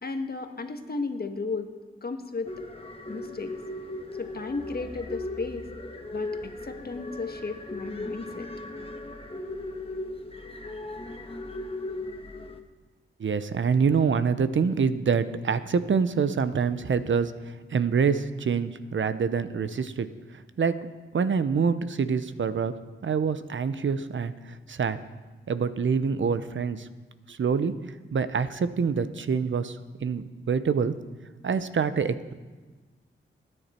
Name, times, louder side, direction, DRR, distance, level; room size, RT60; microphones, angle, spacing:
voice 1, 0.0-1.7 2.0-2.6 3.1-3.6 4.2-5.7 6.1-8.5, left 3 dB, 50° left, 6 dB, 1.5 m, -34 dB
sound 1, 2.4-12.6, left 2 dB, 25° left, 1.5 m, -37 dB
voice 2, 13.2-20.1 20.6-20.9 21.1-22.7 23.0-25.0 25.5-26.9 27.3-27.7 28.1-31.0 31.4-32.3, right 6 dB, 65° right, 13 dB, 0.8 m, -26 dB
18.0 x 10.0 x 4.4 m, 1.3 s
cardioid pair, 45°, 21 cm